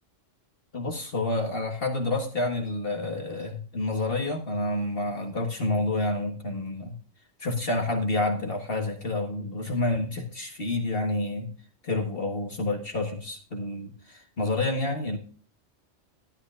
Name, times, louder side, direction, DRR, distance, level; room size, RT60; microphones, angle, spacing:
voice 1, 0.7-6.9 7.4-11.5 11.8-15.2, left 2 dB, 50° left, 2 dB, 1.7 m, -29 dB
12.0 x 11.5 x 2.5 m, 0.41 s
omnidirectional pair, 1.2 m